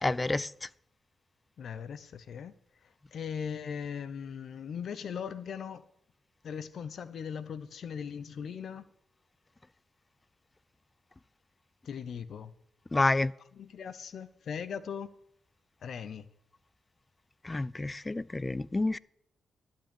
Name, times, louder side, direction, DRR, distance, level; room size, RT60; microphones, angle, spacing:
voice 1, 0.0-0.5 12.9-13.3 17.5-19.0, left 2 dB, 25° left, 0.4 m, -28 dB
voice 2, 1.6-2.5 3.1-5.8 6.4-8.8 11.8-12.5 13.5-15.1 15.8-16.3, left 7 dB, 70° left, 0.8 m, -39 dB
11.5 x 5.6 x 8.5 m
cardioid pair, 70°, 0 cm